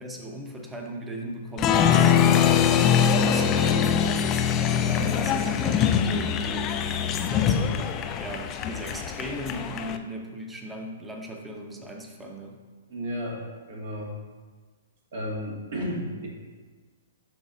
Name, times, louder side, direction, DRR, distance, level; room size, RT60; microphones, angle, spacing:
voice 1, 0.0-4.3 4.6-12.6, equal, 10° right, 1 dB, 1.0 m, -37 dB
Applause, 1.6-10.0, left 8 dB, 30° left, 0.4 m, -23 dB
voice 2, 12.9-14.1 15.1-16.3, equal, 60° right, -2 dB, 1.9 m, -33 dB
11.5 x 4.1 x 2.6 m, 1.4 s
hypercardioid pair, 120°, 0 cm